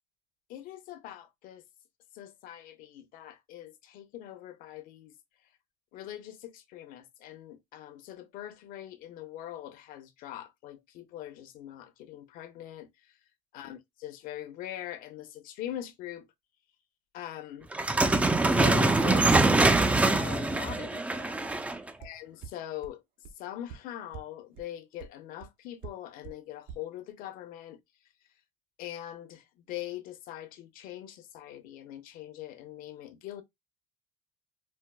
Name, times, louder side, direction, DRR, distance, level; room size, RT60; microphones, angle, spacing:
voice 1, 0.5-1.6 2.1-5.1 5.9-12.9 13.5-16.3 17.1-17.7 18.4-21.4 22.0-23.0 23.4-27.8 28.8-33.4, left 12 dB, 65° left, 0.8 m, -42 dB
sound 1, 17.7-21.9, right 2 dB, 10° right, 0.4 m, -24 dB
sound 2, 22.0-22.1 22.4-22.5 22.8-22.9 23.2-23.3 23.7-23.8 24.1-24.2 24.6-24.7 25.0-25.1 25.4-25.5 25.8-25.9 26.2-26.3 26.7-26.8, right 8 dB, 65° right, 0.7 m, -42 dB
4.4 x 2.2 x 2.2 m
supercardioid pair, 105°, 15 cm